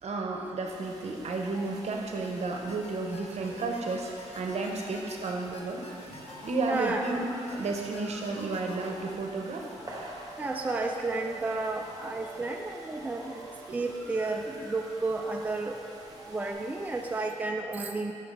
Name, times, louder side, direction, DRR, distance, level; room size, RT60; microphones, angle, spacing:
voice 1, 0.0-9.8 10.7-11.0 12.3-12.4 13.6-13.8 16.1-16.2, right 3 dB, 60° right, 1 dB, 0.8 m, -33 dB
sound 1, 0.7-17.3, right 1 dB, 30° right, 1.0 m, -51 dB
sound 2, 1.6-2.3 2.7-7.1 7.5-8.9, left 3 dB, 55° left, 0.7 m, -47 dB
sound 3, 6.2-16.5, right 1 dB, 10° left, 0.9 m, -48 dB
voice 2, 6.7-7.0 10.4-15.8 16.3-18.1, right 3 dB, 15° right, 2 dB, 0.3 m, -32 dB
5.3 x 3.7 x 5.3 m, 2.5 s
cardioid pair, 80°, 12 cm